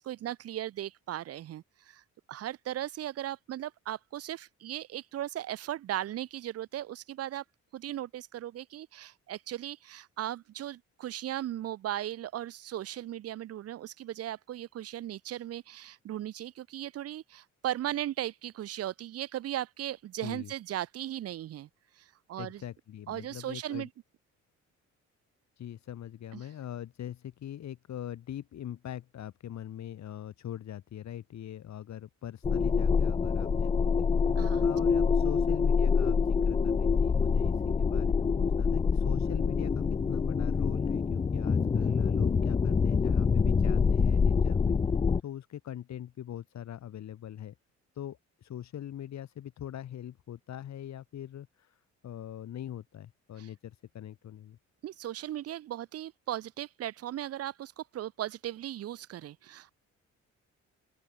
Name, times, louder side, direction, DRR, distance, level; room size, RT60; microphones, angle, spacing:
voice 1, 0.0-2.0 2.3-7.4 7.7-21.7 22.0-22.6 23.1-23.9 26.3-26.4 34.4-34.7 53.4-53.5 54.8-59.7, right 12 dB, 55° right, 0.5 m, -37 dB
voice 2, 22.4-23.9 25.6-47.5 47.9-54.6, left 11 dB, 65° left, 2.4 m, -42 dB
sound 1, 32.4-45.2, left 5 dB, 20° left, 0.4 m, -26 dB
open air
cardioid pair, 90°, 30 cm